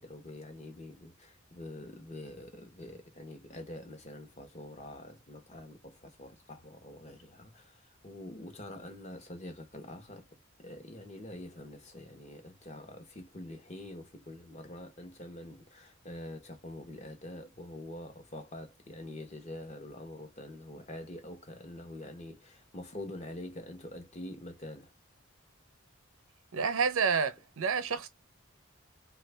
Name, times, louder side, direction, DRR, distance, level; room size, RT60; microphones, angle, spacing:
voice 1, 0.0-10.3 10.6-24.9, left 1 dB, 35° left, 0.9 m, -45 dB
voice 2, 26.5-28.1, right 6 dB, 90° right, 0.6 m, -29 dB
3.1 x 2.4 x 3.3 m
head